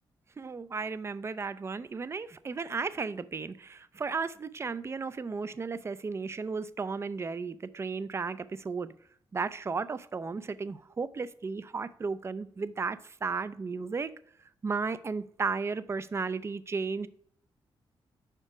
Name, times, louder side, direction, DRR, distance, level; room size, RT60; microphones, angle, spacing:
voice 1, 0.4-8.9 9.3-14.1 14.6-17.1, right 4 dB, 30° right, 15 dB, 0.4 m, -34 dB
4.9 x 4.4 x 5.9 m, 0.63 s
cardioid pair, 105°, 9 cm